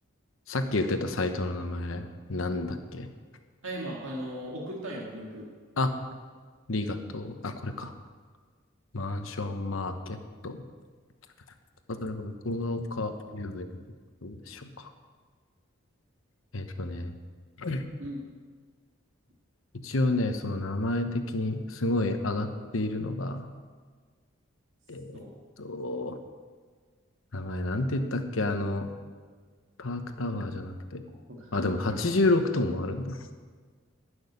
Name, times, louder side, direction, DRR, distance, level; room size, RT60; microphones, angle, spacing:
voice 1, 0.5-3.1 5.8-5.9 6.7-7.9 8.9-10.2 10.4-10.6 11.9-13.7 14.2-14.7 16.5-17.1 17.6-17.8 19.8-23.5 24.9-25.3 25.6-26.1 27.3-28.9 29.8-31.0 31.5-33.2, left 2 dB, 80° left, 7 dB, 1.0 m, -30 dB
voice 2, 3.6-5.5 18.0-18.2 25.1-25.3 31.3-31.6 31.9-32.0, right 1 dB, 80° right, -3 dB, 1.9 m, -37 dB
12.0 x 6.4 x 9.6 m, 1.5 s
head